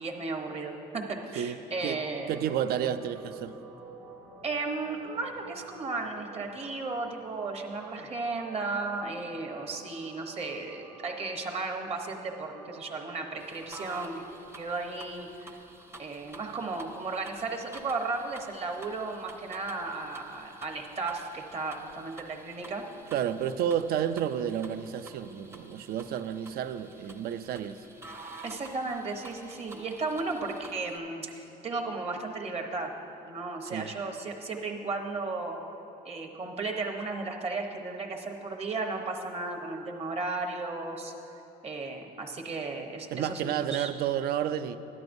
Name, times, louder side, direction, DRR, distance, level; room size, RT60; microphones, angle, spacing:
voice 1, 0.0-2.3 4.4-14.2 14.6-15.5 16.0-22.8 28.4-32.9 33.2-35.6 36.0-41.1 41.6-43.9, right 3 dB, 35° right, 2 dB, 1.0 m, -35 dB
voice 2, 1.4-2.0 2.3-3.5 23.1-27.8 33.7-33.9 43.1-44.8, right 9 dB, 65° right, 12 dB, 0.4 m, -31 dB
sound 1, 1.7-14.3, right 4 dB, 85° right, 1.4 m, -50 dB
sound 2, 13.4-31.0, right 2 dB, 15° right, 0.6 m, -50 dB
13.0 x 11.0 x 2.6 m, 3.0 s
cardioid pair, 110°, 17 cm